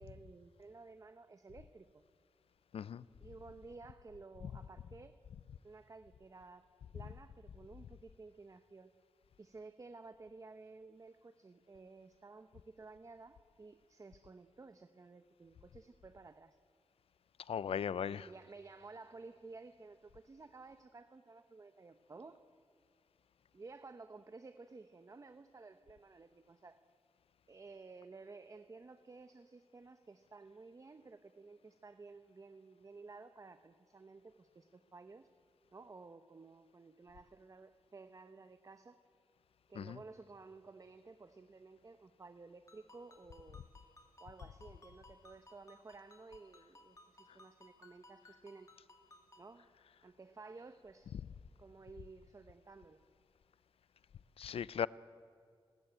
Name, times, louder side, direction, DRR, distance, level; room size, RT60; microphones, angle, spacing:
voice 1, 0.0-2.0 3.2-5.2 5.6-6.7 6.9-8.9 9.4-16.6 18.0-22.4 23.5-26.8 27.5-35.3 35.7-39.0 39.7-43.6 44.2-48.7 49.4-49.7 50.0-51.1 51.6-53.0, right 3 dB, 35° right, 0.8 m, -54 dB
voice 2, 2.7-3.1 17.5-18.3 39.8-40.0 54.4-54.9, left 8 dB, 90° left, 0.5 m, -37 dB
Ringtone, 42.7-49.5, left 2 dB, 35° left, 2.4 m, -62 dB
29.5 x 13.5 x 9.1 m
wide cardioid pair, 115°, 10 cm